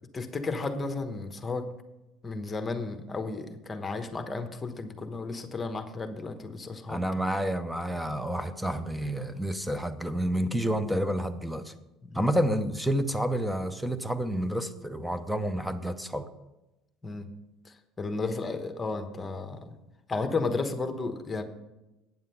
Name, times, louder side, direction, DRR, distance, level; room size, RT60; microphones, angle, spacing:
voice 1, 0.1-1.7 2.2-7.0 12.0-12.3 17.0-17.3 17.6-19.8 20.1-21.4, left 3 dB, 20° left, 7 dB, 1.1 m, -33 dB
voice 2, 6.9-11.7 12.1-16.3, equal, 5° right, 11 dB, 0.7 m, -29 dB
9.2 x 7.4 x 5.7 m, 0.98 s
supercardioid pair, 110°, 0 cm